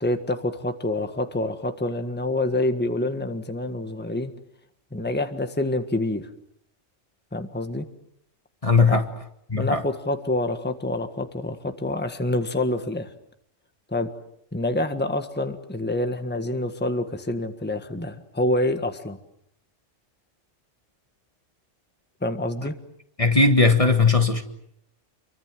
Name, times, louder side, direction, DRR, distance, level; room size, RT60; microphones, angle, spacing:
voice 1, 0.0-4.3 4.9-6.2 7.3-7.9 8.9-9.0 9.5-13.1 13.9-14.1 14.5-19.2 22.2-22.7, left 1 dB, 10° left, 1.6 m, -27 dB
voice 2, 8.6-9.1 9.5-9.8 23.2-24.4, left 3 dB, 30° left, 1.7 m, -18 dB
29.0 x 24.0 x 7.6 m
omnidirectional pair, 1.3 m